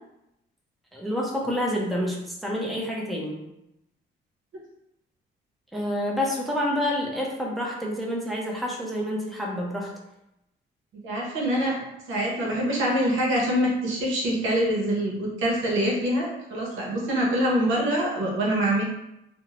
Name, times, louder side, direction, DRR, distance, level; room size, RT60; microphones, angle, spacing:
voice 1, 0.9-3.4 5.7-9.9, left 1 dB, ahead, -2 dB, 0.6 m, -28 dB
voice 2, 11.0-18.8, equal, 80° right, -3 dB, 0.8 m, -25 dB
2.6 x 2.1 x 2.8 m, 0.85 s
cardioid pair, 90°, 20 cm